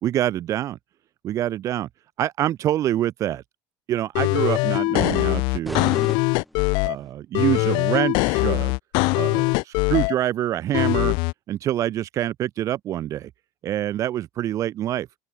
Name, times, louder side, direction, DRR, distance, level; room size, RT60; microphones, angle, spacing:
voice 1, 0.0-0.8 1.2-1.9 2.2-3.4 3.9-5.9 6.8-8.7 9.2-11.1 11.5-13.3 13.6-15.1, right 12 dB, 40° right, 4.5 m, -25 dB
sound 1, 4.2-7.0 7.3-10.1 10.7-11.3, left 28 dB, 65° left, 1.5 m, -22 dB
sound 2, 5.6-7.1, equal, ahead, 2.4 m, -36 dB
open air
cardioid pair, 160°, 9 cm